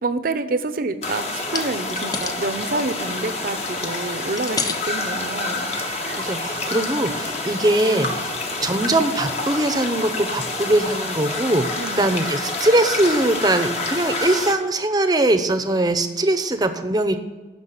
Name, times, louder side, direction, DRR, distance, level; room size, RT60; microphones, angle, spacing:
voice 1, 0.0-5.7 6.0-6.3 11.8-12.1, right 3 dB, 55° right, 11 dB, 0.7 m, -28 dB
sound 1, 1.0-14.5, left 2 dB, 40° left, 1.3 m, -28 dB
sound 2, 1.0-1.2 1.5-2.4 2.8-3.7 4.2-5.0 5.6-5.7 6.2-6.3, left 4 dB, 20° left, 0.6 m, -31 dB
voice 2, 6.2-8.3 8.6-11.7 12.0-17.2, right 1 dB, 25° right, 9 dB, 0.8 m, -21 dB
9.8 x 6.2 x 7.7 m, 1.2 s
head